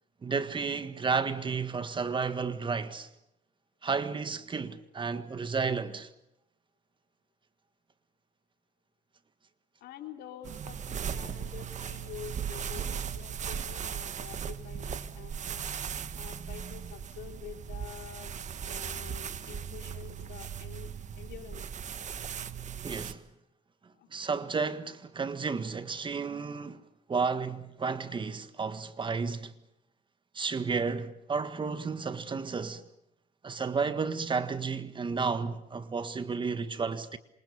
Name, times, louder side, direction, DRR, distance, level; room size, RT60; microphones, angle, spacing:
voice 1, 0.2-3.1 3.8-6.1 22.8-23.2 24.1-26.8 27.1-29.5 30.3-32.8 33.4-37.2, right 5 dB, 30° right, 1.7 m, -32 dB
voice 2, 9.8-15.7 16.2-20.9 21.2-21.6 23.9-24.1, left 10 dB, 75° left, 3.8 m, -47 dB
sound 1, 10.4-23.1, right 8 dB, 45° right, 1.6 m, -38 dB
27.5 x 26.5 x 7.0 m
cardioid pair, 110°, 17 cm